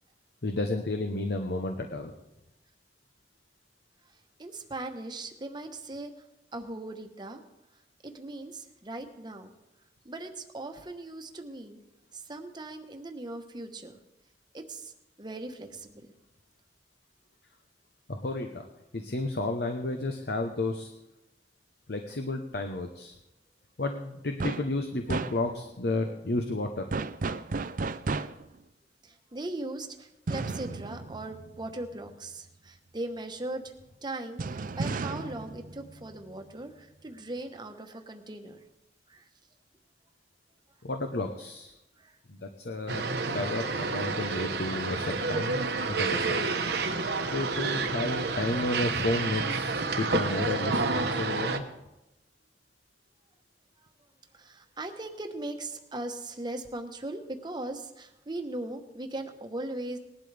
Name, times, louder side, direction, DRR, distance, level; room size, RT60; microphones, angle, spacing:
voice 1, 0.4-2.1 18.1-18.6 18.9-20.9 21.9-23.1 23.8-26.9 40.8-41.7 42.3-43.0 43.3-46.4 47.2-51.6, left 2 dB, 65° left, 4 dB, 0.9 m, -32 dB
voice 2, 4.4-6.1 6.5-7.4 8.0-9.5 10.0-11.8 12.1-13.9 14.5-14.9 15.2-16.1 29.0-33.7 34.0-38.6 39.1-39.3 42.0-42.2 54.3-60.0, right 2 dB, 25° right, 5 dB, 1.1 m, -39 dB
sound 1, 24.4-24.7 25.1-25.7 26.9-28.6 30.3-32.1 34.4-36.5, right 3 dB, 50° right, 0.5 m, -34 dB
sound 2, 42.9-51.6, right 4 dB, 65° right, 1.1 m, -29 dB
19.0 x 11.5 x 3.4 m, 0.93 s
head